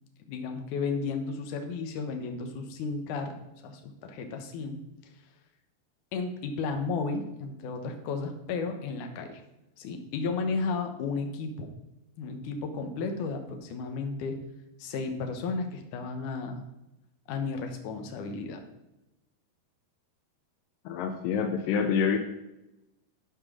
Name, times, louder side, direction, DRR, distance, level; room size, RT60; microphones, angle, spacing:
voice 1, 0.3-4.8 6.1-9.4 9.8-11.7 12.2-14.4 14.8-16.6 17.3-18.6, left 4 dB, 65° left, 5 dB, 2.1 m, -33 dB
voice 2, 20.9-22.2, left 6 dB, 85° left, 6 dB, 1.9 m, -27 dB
12.0 x 4.5 x 6.1 m, 0.93 s
omnidirectional pair, 4.8 m